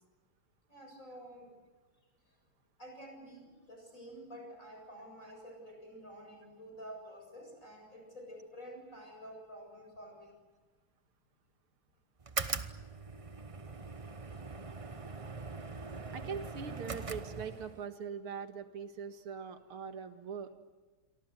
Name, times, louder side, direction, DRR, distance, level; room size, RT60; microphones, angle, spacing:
voice 1, 0.7-1.5 2.8-10.4, equal, 35° left, 3 dB, 8.1 m, -50 dB
sound 1, 12.2-17.9, right 4 dB, 45° right, 0.4 m, -41 dB
voice 2, 16.1-20.5, right 6 dB, 85° right, 8 dB, 2.5 m, -42 dB
28.5 x 23.5 x 8.0 m, 1.3 s
omnidirectional pair, 2.3 m